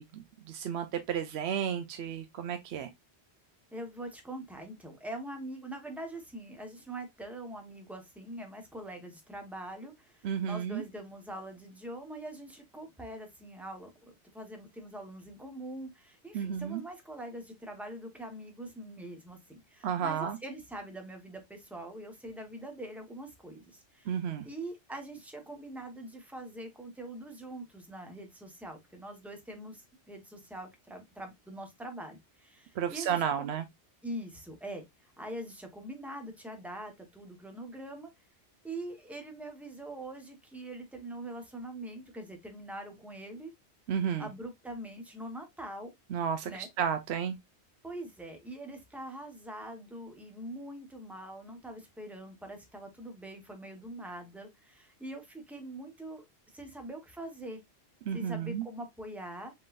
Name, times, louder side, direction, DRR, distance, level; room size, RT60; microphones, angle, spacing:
voice 1, 0.0-2.9 10.2-10.8 16.3-16.8 19.8-20.4 24.1-24.5 32.8-33.6 43.9-44.3 46.1-47.4 58.1-58.6, right 8 dB, 70° right, 0.8 m, -32 dB
voice 2, 3.7-13.9 14.3-24.2 24.4-33.5 34.0-38.1 38.6-43.5 44.2-45.9 46.4-46.7 47.8-56.2 56.5-57.6 58.1-59.5, right 1 dB, ahead, 1.1 m, -43 dB
5.2 x 3.9 x 2.5 m
omnidirectional pair, 1.2 m